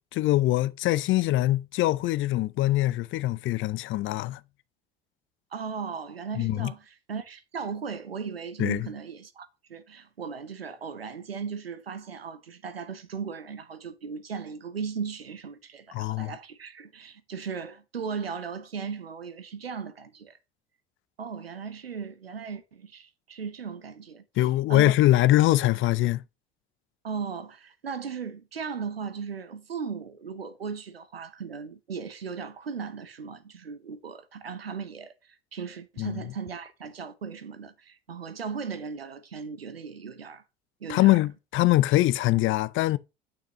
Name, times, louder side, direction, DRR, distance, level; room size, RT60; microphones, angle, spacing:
voice 1, 0.1-4.4 6.4-6.7 8.6-8.9 15.9-16.3 24.4-26.2 36.0-36.2 40.9-43.0, left 16 dB, 45° left, 0.5 m, -23 dB
voice 2, 5.5-20.4 21.2-24.9 27.0-40.4 40.8-41.2, right 6 dB, 85° right, 0.8 m, -37 dB
9.0 x 5.9 x 2.9 m
figure-of-eight pair, 65°, 29 cm